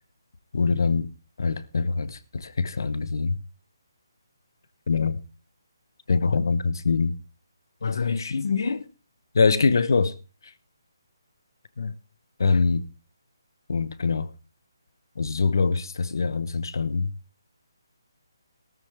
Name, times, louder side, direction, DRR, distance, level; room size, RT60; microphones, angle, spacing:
voice 1, 0.5-1.1 1.4-3.4 4.9-5.2 6.1-7.2 7.8-8.9 9.3-10.1 10.4-10.5 11.8-11.9 12.4-12.9 13.7-14.3 15.2-17.1, left 4 dB, 60° left, 0.9 m, -24 dB
13.5 x 13.5 x 3.5 m
hypercardioid pair, 175°, 2 cm